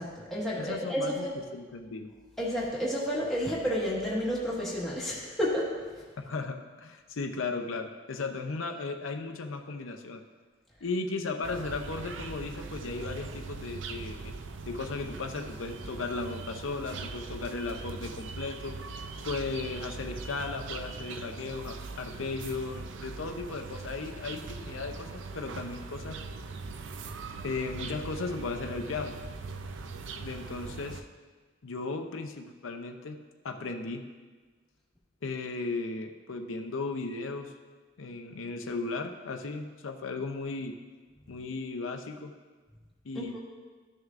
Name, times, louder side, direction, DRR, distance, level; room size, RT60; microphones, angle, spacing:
voice 1, 0.0-1.4 2.4-6.0 41.3-41.4 43.1-43.4, equal, ahead, -7 dB, 1.5 m, -31 dB
voice 2, 0.6-1.2 1.5-2.1 6.2-10.2 10.8-14.3 14.6-18.7 19.2-26.2 27.4-29.2 30.2-31.0 31.6-33.2 33.4-34.0 35.2-37.5 38.0-40.7 41.3-42.3 43.0-43.4, left 3 dB, 85° left, 5 dB, 0.6 m, -36 dB
sound 1, 11.4-31.0, right 4 dB, 70° right, 0.4 m, -41 dB
12.5 x 6.4 x 2.5 m, 1.4 s
head